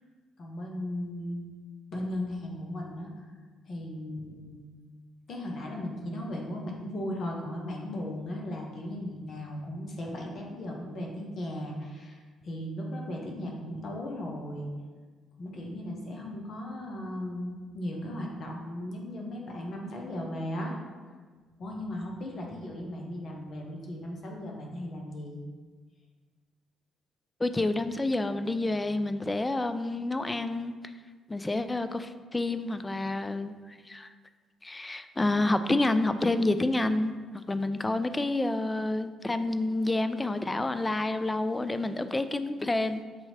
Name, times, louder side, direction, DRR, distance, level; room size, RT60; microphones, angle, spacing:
voice 1, 0.4-1.4 1.9-3.1 3.7-4.6 5.3-14.7 15.4-20.8 21.6-25.4, left 1 dB, 55° left, 0 dB, 0.8 m, -37 dB
voice 2, 27.4-30.7 31.3-34.1 34.6-37.1 37.5-43.0, left 2 dB, 20° left, 10 dB, 0.3 m, -28 dB
6.8 x 2.8 x 2.8 m, 1.5 s
hypercardioid pair, 50°, 0 cm